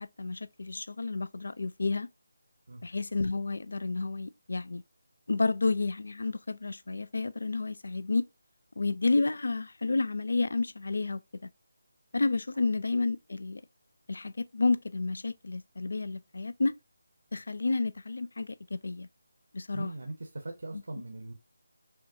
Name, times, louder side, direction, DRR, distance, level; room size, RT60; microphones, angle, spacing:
voice 1, 0.0-2.1 2.8-4.8 5.3-8.2 8.8-11.5 12.1-13.6 14.1-16.8 17.3-19.1 19.5-19.9, left 3 dB, 60° left, 0.3 m, -30 dB
voice 2, 19.7-21.3, right 2 dB, 65° right, 0.7 m, -40 dB
5.6 x 2.3 x 2.6 m
figure-of-eight pair, 155°, 0 cm